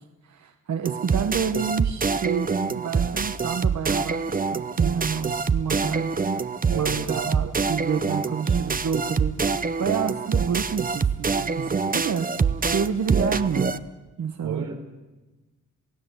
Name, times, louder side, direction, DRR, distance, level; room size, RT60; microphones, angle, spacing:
voice 1, 0.2-6.4 6.7-12.3 12.7-13.8 14.2-14.7, right 7 dB, 60° right, 7 dB, 1.1 m, -29 dB
sound 1, 0.8-13.8, right 5 dB, 25° right, 0.7 m, -25 dB
voice 2, 6.7-7.2 14.4-15.0, right 6 dB, 90° right, 4 dB, 4.0 m, -32 dB
28.0 x 17.0 x 8.0 m, 1.1 s
wide cardioid pair, 140°, 32 cm